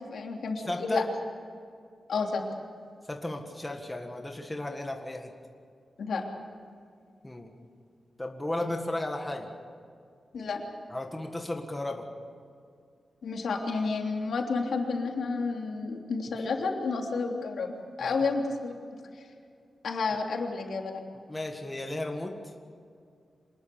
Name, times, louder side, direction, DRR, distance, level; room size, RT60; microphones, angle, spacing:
voice 1, 0.1-1.0 2.1-2.4 6.0-6.2 10.3-10.6 13.2-18.7 19.8-21.0, left 4 dB, 75° left, 1 dB, 3.2 m, -30 dB
voice 2, 0.6-1.1 3.1-5.3 7.2-7.5 8.2-9.5 10.9-12.1 18.0-18.3 21.3-22.5, left 1 dB, 10° left, 3 dB, 1.7 m, -34 dB
26.0 x 20.0 x 7.1 m, 2.4 s
wide cardioid pair, 165°, 0 cm